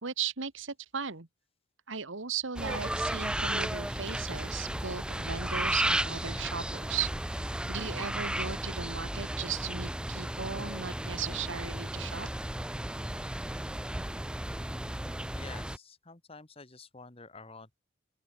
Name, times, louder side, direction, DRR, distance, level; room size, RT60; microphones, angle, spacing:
voice 1, 0.0-1.3 1.9-7.1 7.7-12.3, right 7 dB, 65° right, 1.6 m, -37 dB
sound 1, 2.6-15.8, right 1 dB, 5° right, 0.5 m, -34 dB
voice 2, 15.3-17.8, left 3 dB, 25° left, 1.5 m, -49 dB
open air
head